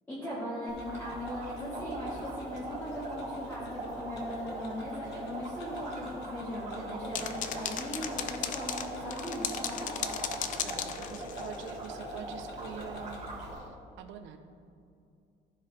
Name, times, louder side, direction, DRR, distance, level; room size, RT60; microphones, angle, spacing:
voice 1, 0.1-10.1, equal, 10° left, -10 dB, 1.6 m, -39 dB
Tick-tock, 0.7-13.5, left 1 dB, 60° left, 1.2 m, -49 dB
sound 1, 0.8-13.7, right 1 dB, 35° right, 2.2 m, -41 dB
sound 2, 7.1-11.7, left 9 dB, 40° left, 0.5 m, -36 dB
voice 2, 10.6-14.4, right 8 dB, 75° right, 7 dB, 0.8 m, -45 dB
14.5 x 4.9 x 3.3 m, 2.4 s
cardioid pair, 180°, 19 cm